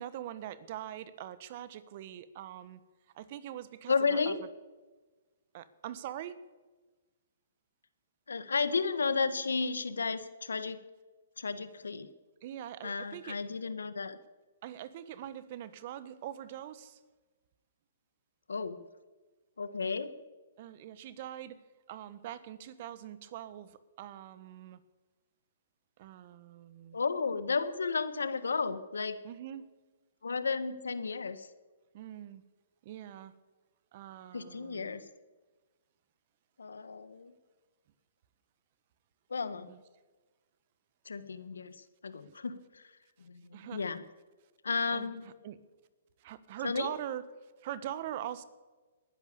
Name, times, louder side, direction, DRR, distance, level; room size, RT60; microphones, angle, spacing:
voice 1, 0.0-2.8 3.1-4.5 5.5-6.4 12.4-13.4 14.6-17.0 20.6-21.6 21.9-24.8 26.0-27.0 29.2-29.7 31.9-32.4 32.8-33.3 33.9-35.0 39.7-39.8 42.3-42.4 43.5-43.9 44.9-45.6 46.2-48.4, right 11 dB, 45° right, 15 dB, 1.2 m, -43 dB
voice 2, 3.9-4.4 8.3-10.8 11.4-12.1 12.8-14.2 18.5-18.9 19.6-20.2 26.9-29.2 30.2-31.5 34.3-35.1 36.6-37.3 39.3-39.7 41.0-42.8 43.2-44.0 44.6-45.3 46.6-46.9, left 4 dB, 85° left, 13 dB, 1.4 m, -33 dB
19.5 x 10.5 x 7.0 m, 1.3 s
hypercardioid pair, 135°, 0 cm